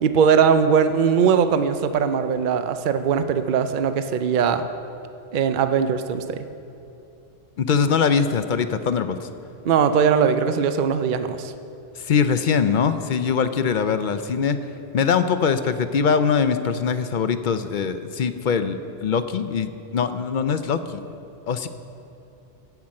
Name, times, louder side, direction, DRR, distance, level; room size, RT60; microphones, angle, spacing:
voice 1, 0.0-4.6 5.3-6.4 9.6-11.5, right 6 dB, 55° right, 10 dB, 0.7 m, -20 dB
voice 2, 7.6-9.3 12.0-14.6 14.9-21.0 21.5-21.7, left 6 dB, 55° left, 11 dB, 0.6 m, -22 dB
15.5 x 5.9 x 7.6 m, 2.8 s
omnidirectional pair, 1.1 m